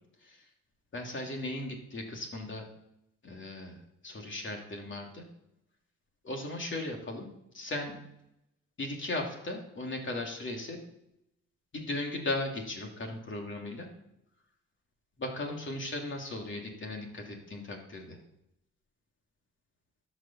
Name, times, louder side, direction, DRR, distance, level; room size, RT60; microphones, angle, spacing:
voice 1, 0.9-2.7 3.2-3.8 4.0-5.3 6.2-7.3 7.5-7.9 8.8-10.8 11.7-13.9 15.2-18.2, left 2 dB, 40° left, 1 dB, 2.9 m, -37 dB
11.5 x 5.5 x 7.4 m, 0.83 s
cardioid pair, 90°, 30 cm